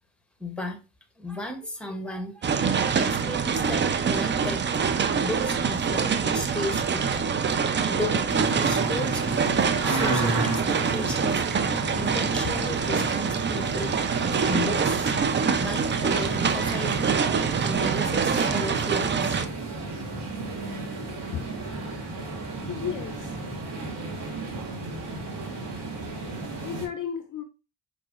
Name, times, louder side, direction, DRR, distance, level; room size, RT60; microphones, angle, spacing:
voice 1, 0.4-0.8 1.2-7.3 7.9-9.4 9.8-11.4 12.0-13.9 14.3-15.1 15.6-17.2 17.6-19.4, left 1 dB, ahead, 0.8 m, -35 dB
sound 1, 2.4-19.4, right 6 dB, 25° right, 0.3 m, -25 dB
sound 2, 8.3-26.9, right 2 dB, 60° right, 1.2 m, -33 dB
voice 2, 22.7-23.4 25.2-25.3 26.1-27.4, left 8 dB, 45° left, 0.5 m, -35 dB
4.7 x 2.0 x 2.3 m
supercardioid pair, 45°, 46 cm